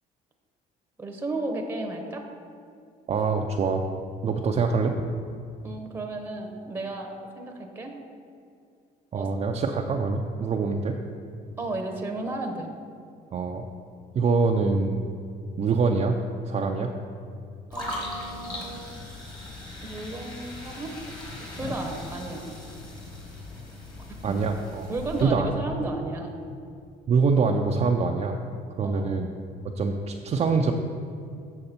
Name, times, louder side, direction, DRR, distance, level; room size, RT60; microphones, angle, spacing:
voice 1, 1.0-2.3 5.6-7.9 9.1-9.3 11.6-12.7 17.7-18.8 19.8-20.9 21.5-22.5 24.1-24.4 24.9-26.3 28.8-29.1, right 2 dB, 10° right, 3 dB, 0.8 m, -33 dB
voice 2, 3.1-3.9 4.2-5.0 9.1-11.0 13.3-13.6 14.1-15.0 15.6-16.2 16.5-16.9 24.2-24.9 25.2-25.6 27.1-28.4 28.8-29.3 29.6-30.7, right 4 dB, 35° right, 1 dB, 0.4 m, -24 dB
sound 1, 17.7-25.2, left 1 dB, 25° left, 1.7 m, -39 dB
6.6 x 6.5 x 4.3 m, 2.4 s
cardioid pair, 110°, 17 cm